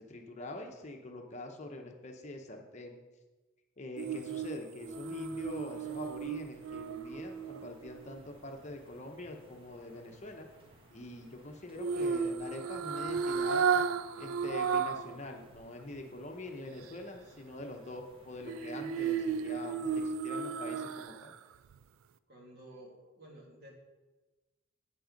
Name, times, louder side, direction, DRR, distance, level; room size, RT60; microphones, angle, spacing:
voice 1, 0.1-3.0 3.8-10.5 10.9-13.8 14.2-21.3, left 2 dB, 35° left, 3 dB, 0.8 m, -44 dB
sound 1, 4.0-8.2 11.8-15.2 15.5-15.6 18.5-21.3 21.7-21.8, right 6 dB, 85° right, 0.4 m, -34 dB
sound 2, 4.8-20.2, equal, 25° right, 1.8 m, -63 dB
voice 2, 22.3-23.7, right 1 dB, 50° right, -1 dB, 2.2 m, -53 dB
8.5 x 7.7 x 5.2 m, 1.2 s
head